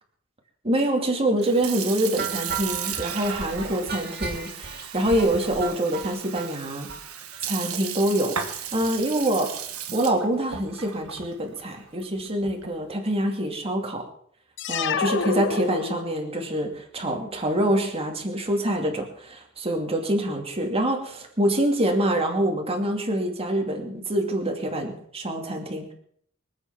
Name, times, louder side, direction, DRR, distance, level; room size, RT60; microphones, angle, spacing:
voice 1, 0.6-6.9 7.4-9.5 9.9-14.0 14.7-25.9, right 1 dB, 25° right, 2 dB, 2.6 m, -25 dB
Sink (filling or washing) / Fill (with liquid), 1.3-12.8, right 8 dB, 80° right, 1.5 m, -36 dB
sound 1, 2.2-6.5 6.9-7.0 7.3-7.4 7.6-7.8 8.1-8.2, right 5 dB, 45° right, 3.4 m, -35 dB
sound 2, 14.6-16.4, left 5 dB, 60° left, 0.8 m, -28 dB
24.0 x 8.3 x 6.0 m, 0.64 s
head